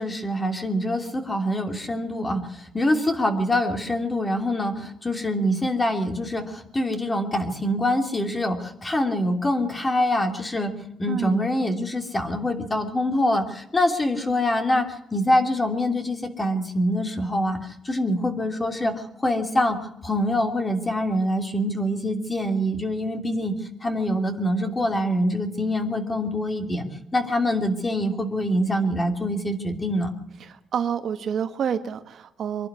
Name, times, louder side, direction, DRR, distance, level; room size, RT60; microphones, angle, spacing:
voice 1, 0.0-10.7 11.0-17.6 17.8-19.8 20.0-23.5 23.8-26.8 27.1-30.1, left 1 dB, 20° left, 6 dB, 2.9 m, -25 dB
voice 2, 11.1-11.4 30.4-32.7, right 8 dB, 60° right, 9 dB, 1.5 m, -28 dB
24.5 x 11.5 x 9.7 m, 0.82 s
cardioid pair, 130°, 0 cm